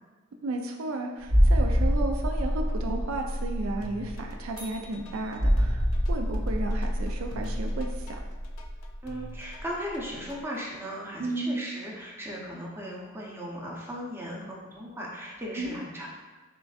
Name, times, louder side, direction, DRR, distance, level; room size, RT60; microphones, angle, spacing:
voice 1, 0.4-5.8 6.1-8.2 11.2-11.6 15.6-15.9, right 2 dB, 65° right, 3 dB, 0.4 m, -33 dB
sound 1, 1.2-9.7 9.9-10.1, equal, 90° right, 0.9 m, -26 dB
sound 2, 3.8-10.6, left 2 dB, 70° left, 0.4 m, -48 dB
sound 3, 4.6-6.2, right 2 dB, 40° right, 0.8 m, -50 dB
voice 2, 9.0-16.1, equal, 10° right, -4 dB, 0.6 m, -37 dB
6.6 x 2.5 x 2.4 m, 1.3 s
head